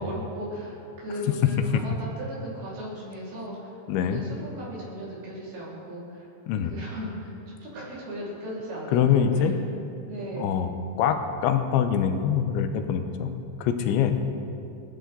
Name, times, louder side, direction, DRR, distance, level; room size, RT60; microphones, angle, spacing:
voice 1, 0.0-3.7 4.0-6.3 6.7-9.5 10.0-10.5, equal, 55° right, -8 dB, 6.5 m, -36 dB
voice 2, 1.4-1.8 3.9-4.2 6.5-6.7 8.9-9.5 10.4-10.7 11.0-13.3 13.6-14.2, left 8 dB, 85° left, 7 dB, 3.2 m, -24 dB
29.5 x 10.5 x 4.0 m, 2.7 s
omnidirectional pair, 5.3 m